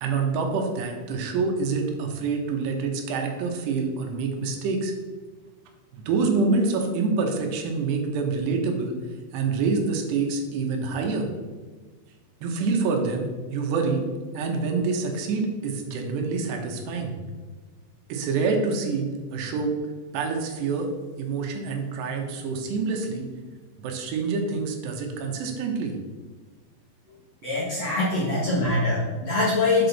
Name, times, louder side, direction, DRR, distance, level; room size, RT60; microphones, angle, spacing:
voice 1, 0.0-4.9 6.1-9.0 9.3-11.3 12.4-14.0 14.3-17.1 18.1-19.7 20.1-20.9 21.2-23.3 23.8-25.9, right 4 dB, 80° right, 3 dB, 3.1 m, -26 dB
voice 2, 27.4-29.9, left 2 dB, 55° left, -7 dB, 1.9 m, -23 dB
7.9 x 6.2 x 4.0 m, 1.4 s
omnidirectional pair, 5.0 m